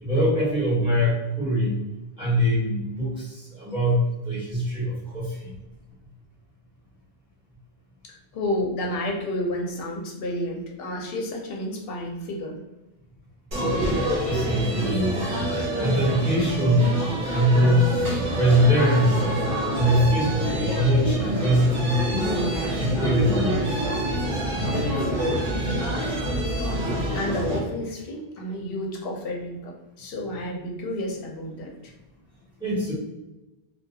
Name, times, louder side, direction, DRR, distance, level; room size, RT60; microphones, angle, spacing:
voice 1, 0.0-1.8 2.2-4.0 4.2-5.6 14.3-15.2 15.7-17.0 17.3-17.8 18.4-19.2 19.7-22.3 22.8-23.6 32.6-32.9, equal, 5° right, -9 dB, 1.2 m, -22 dB
voice 2, 8.0-12.6 27.1-31.9, left 1 dB, 70° left, 1 dB, 0.8 m, -31 dB
sound 1, 13.5-27.6, equal, 60° right, 0.9 m, -26 dB
2.3 x 2.3 x 2.6 m, 1.0 s
omnidirectional pair, 1.0 m